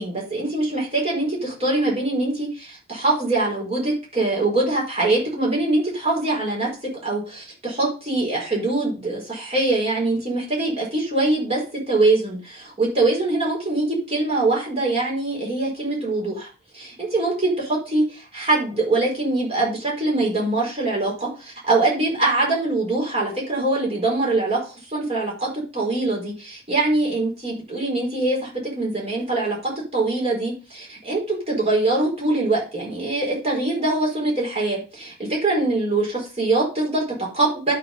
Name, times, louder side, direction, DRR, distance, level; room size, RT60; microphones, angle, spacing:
voice 1, 0.0-6.7 7.0-16.5 16.7-37.7, right 2 dB, 30° right, -4 dB, 4.4 m, -23 dB
11.5 x 4.6 x 5.3 m, 0.34 s
head